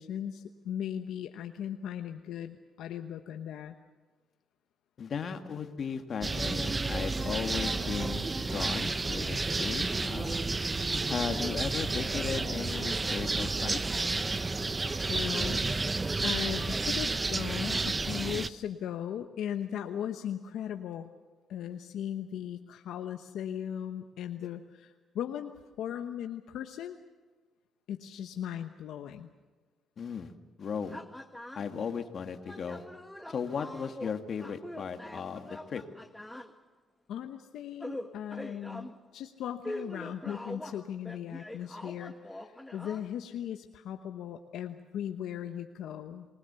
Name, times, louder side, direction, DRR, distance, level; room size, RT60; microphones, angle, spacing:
voice 1, 0.0-3.7 15.1-15.9 16.2-21.1 21.5-27.0 27.9-29.3 37.1-46.3, left 9 dB, 80° left, 6 dB, 1.1 m, -38 dB
voice 2, 5.0-10.5 11.1-13.8 30.0-30.3 30.6-31.0 31.6-32.8 33.3-35.8, left 6 dB, 55° left, 6 dB, 2.0 m, -36 dB
sound 1, 6.2-18.5, right 3 dB, 25° right, 0.8 m, -31 dB
sound 2, 30.9-31.7 32.4-36.5 37.8-38.9 39.6-43.0, left 1 dB, 5° left, 1.6 m, -43 dB
27.5 x 20.5 x 6.9 m, 1.3 s
cardioid pair, 90°, 0 cm